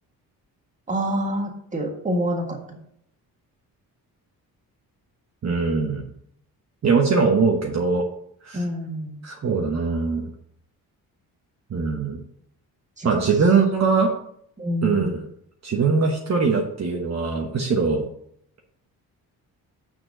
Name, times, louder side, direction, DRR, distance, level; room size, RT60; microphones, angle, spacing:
voice 1, 0.9-2.8 8.5-9.2 13.0-13.2 14.6-15.2, right 1 dB, 20° right, 1 dB, 1.7 m, -27 dB
voice 2, 5.4-6.1 6.8-8.1 8.4-8.6 9.2-10.3 11.7-12.2 13.0-14.1 14.8-15.2 15.6-18.0, right 4 dB, 45° right, 1 dB, 1.2 m, -21 dB
6.3 x 4.5 x 6.6 m, 0.69 s
cardioid pair, 100°, 37 cm